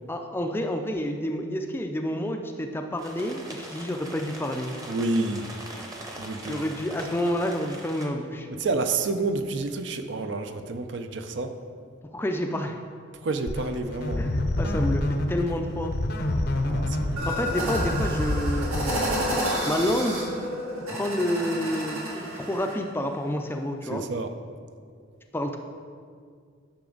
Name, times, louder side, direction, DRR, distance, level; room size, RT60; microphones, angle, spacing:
voice 1, 0.1-4.8 6.4-8.5 12.1-12.8 14.2-15.0 15.3-15.9 17.3-19.1 19.7-20.2 20.9-24.0 25.3-25.6, left 1 dB, 10° left, 4 dB, 0.4 m, -29 dB
sound 1, 3.0-8.0, right 1 dB, 15° right, 0.8 m, -41 dB
voice 2, 4.9-5.5 6.2-6.6 8.5-11.6 13.1-14.2 16.6-17.2 23.8-24.3, right 3 dB, 55° right, 8 dB, 0.5 m, -29 dB
sound 2, 13.5-19.3, left 1 dB, 50° left, 0.6 m, -28 dB
sound 3, 17.2-22.8, right 1 dB, 80° right, 1.9 m, -30 dB
10.5 x 5.9 x 3.9 m, 2.1 s
head